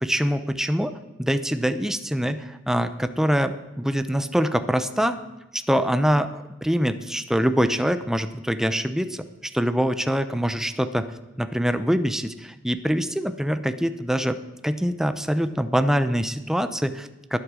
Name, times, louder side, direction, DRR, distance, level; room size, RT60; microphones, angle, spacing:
voice 1, 0.0-5.2 5.5-11.1 11.4-17.4, equal, 5° right, 10 dB, 0.6 m, -24 dB
12.0 x 11.0 x 6.2 m, 1.0 s
head